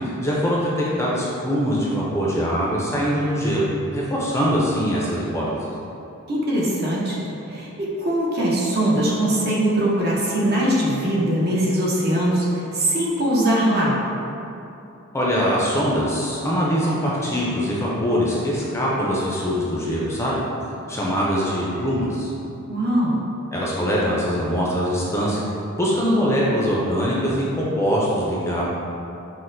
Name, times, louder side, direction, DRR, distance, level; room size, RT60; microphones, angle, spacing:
voice 1, 0.2-3.7 3.9-5.7 15.1-20.4 20.9-22.3 23.5-25.4 25.8-28.6, equal, 15° left, -6 dB, 0.4 m, -22 dB
voice 2, 6.3-7.2 7.5-13.9 22.7-23.2, right 1 dB, 50° right, -4 dB, 0.7 m, -21 dB
5.9 x 2.1 x 2.6 m, 2.8 s
head